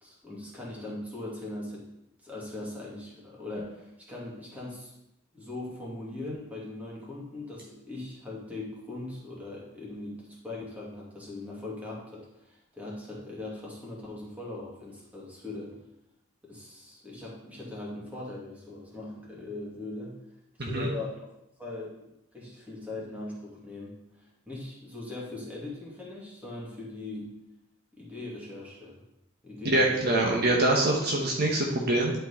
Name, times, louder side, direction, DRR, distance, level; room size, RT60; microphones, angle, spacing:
voice 1, 0.0-1.9 2.2-4.9 5.3-15.7 16.4-20.1 20.6-21.2 21.6-22.1 22.3-27.3 27.9-29.0 29.4-30.2, left 2 dB, 5° right, -5 dB, 2.4 m, -40 dB
voice 2, 20.6-20.9 29.6-32.1, right 1 dB, 50° right, -1 dB, 1.1 m, -24 dB
11.0 x 4.6 x 4.3 m, 0.84 s
head